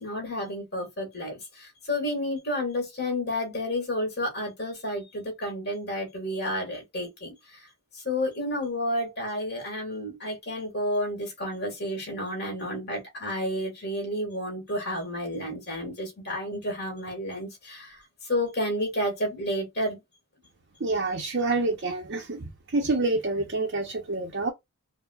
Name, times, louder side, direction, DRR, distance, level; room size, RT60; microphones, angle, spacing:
voice 1, 0.0-7.6 8.0-20.0, left 1 dB, 45° left, 1.7 m, -31 dB
voice 2, 20.8-22.5 22.7-24.5, right 3 dB, 50° right, 0.6 m, -27 dB
4.6 x 2.1 x 2.3 m
head